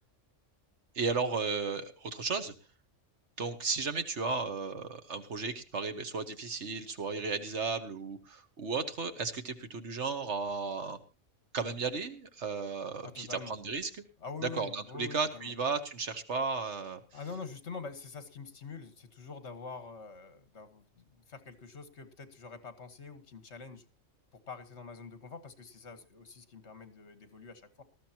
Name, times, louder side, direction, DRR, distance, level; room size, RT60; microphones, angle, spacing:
voice 1, 1.0-2.5 3.4-11.0 11.5-13.9 14.6-17.0, right 4 dB, 65° right, 8 dB, 1.6 m, -34 dB
voice 2, 13.0-13.6 14.2-15.5 17.1-23.9 24.3-27.8, left 4 dB, 60° left, 11 dB, 1.9 m, -45 dB
19.0 x 13.5 x 2.9 m, 0.31 s
omnidirectional pair, 1.3 m